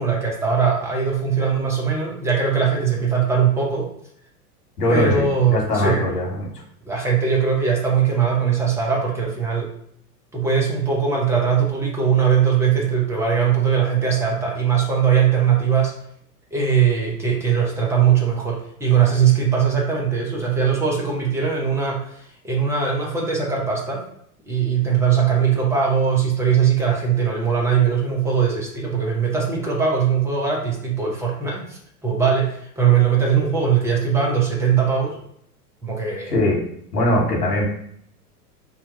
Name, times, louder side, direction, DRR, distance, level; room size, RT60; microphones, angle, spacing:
voice 1, 0.0-3.9 4.9-6.0 6.9-9.7 10.3-15.9 16.5-24.0 24.5-35.1 35.8-36.3, right 7 dB, 5° right, -3 dB, 0.5 m, -20 dB
voice 2, 4.8-6.5 36.3-36.6 36.9-37.7, left 1 dB, 75° left, -1 dB, 1.2 m, -21 dB
2.7 x 2.2 x 3.9 m, 0.68 s
figure-of-eight pair, 95°, 47 cm